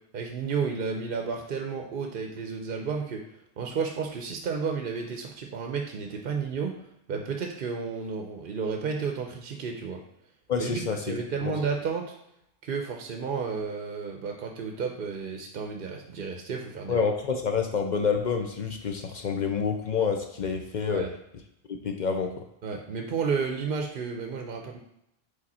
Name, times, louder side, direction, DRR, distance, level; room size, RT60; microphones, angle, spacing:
voice 1, 0.1-3.2 3.6-6.7 7.1-10.0 10.6-10.8 11.1-12.1 12.6-17.0 20.8-21.1 22.6-24.8, right 5 dB, 55° right, 3 dB, 0.8 m, -32 dB
voice 2, 10.5-11.5 16.9-21.1 21.7-22.3, left 5 dB, 50° left, 4 dB, 0.6 m, -28 dB
5.0 x 4.5 x 4.2 m, 0.81 s
omnidirectional pair, 1.1 m